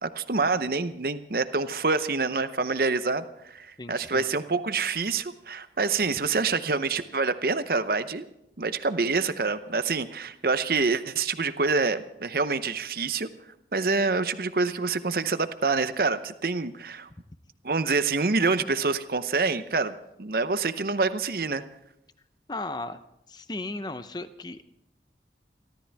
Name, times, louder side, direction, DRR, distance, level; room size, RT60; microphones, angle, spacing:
voice 1, 0.0-8.2 8.6-13.3 13.7-17.1 17.6-21.6, right 4 dB, 55° right, 12 dB, 0.8 m, -26 dB
voice 2, 3.8-4.3 22.5-23.0 23.3-24.6, left 2 dB, 25° left, 11 dB, 0.7 m, -35 dB
29.0 x 13.0 x 3.5 m, 0.81 s
head